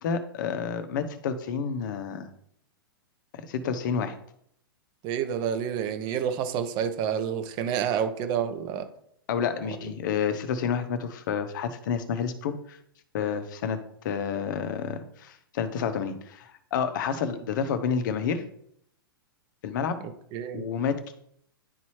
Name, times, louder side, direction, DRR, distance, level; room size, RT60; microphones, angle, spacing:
voice 1, 0.0-2.3 3.4-4.1 9.3-12.8 13.1-13.8 14.0-18.4 19.6-20.0 20.5-21.2, left 6 dB, 55° left, 9 dB, 1.0 m, -29 dB
voice 2, 5.0-8.8 20.3-20.7, right 8 dB, 40° right, 8 dB, 1.0 m, -29 dB
11.0 x 4.2 x 3.2 m, 0.69 s
hypercardioid pair, 110°, 12 cm